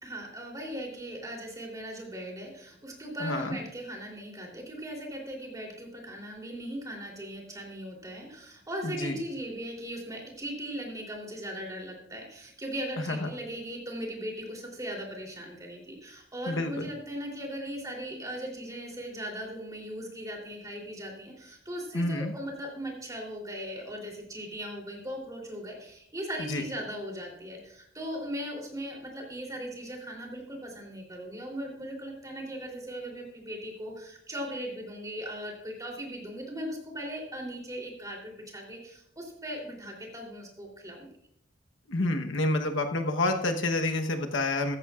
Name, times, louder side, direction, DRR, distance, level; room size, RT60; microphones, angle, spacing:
voice 1, 0.0-41.1, equal, 20° right, -1 dB, 3.3 m, -38 dB
voice 2, 3.2-3.6 8.8-9.2 13.1-13.2 16.5-16.9 21.9-22.3 26.5-26.6 41.9-44.7, left 2 dB, 90° left, 5 dB, 1.1 m, -28 dB
15.5 x 13.5 x 2.5 m, 0.75 s
head